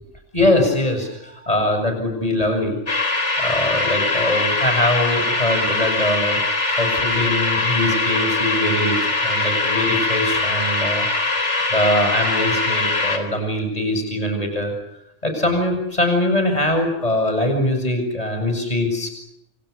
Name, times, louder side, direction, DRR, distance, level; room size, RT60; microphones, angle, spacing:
voice 1, 0.3-2.8 3.2-6.4 6.7-9.0 9.2-14.7 15.2-19.1, left 1 dB, 30° left, 5 dB, 7.4 m, -22 dB
sound 1, 2.9-13.2, left 2 dB, 70° left, 4.5 m, -22 dB
28.5 x 28.0 x 6.7 m, 0.79 s
omnidirectional pair, 1.2 m